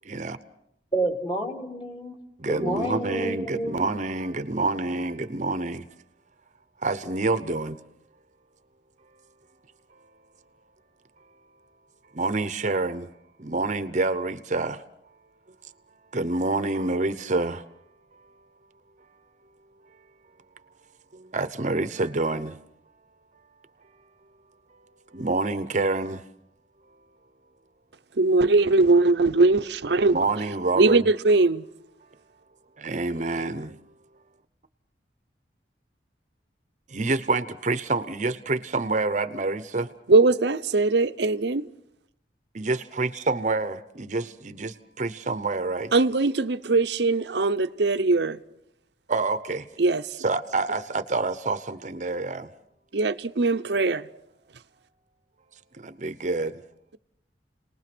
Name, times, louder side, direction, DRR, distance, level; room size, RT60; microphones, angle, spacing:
voice 1, 0.1-0.4 2.4-5.9 6.8-7.8 12.1-13.1 13.4-14.8 16.1-17.6 21.1-22.6 25.1-26.2 30.1-31.1 32.8-33.8 36.9-39.9 42.5-45.9 49.1-49.7 50.2-52.5 55.7-56.6, right 3 dB, 40° right, 0.9 m, -27 dB
voice 2, 0.9-2.2 2.5-3.8, right 1 dB, 30° left, 3.3 m, -29 dB
voice 3, 28.2-30.2 30.8-31.7 40.1-41.7 45.9-48.4 49.8-50.0 52.9-54.1, right 3 dB, 70° right, 0.8 m, -21 dB
30.0 x 20.0 x 6.1 m
head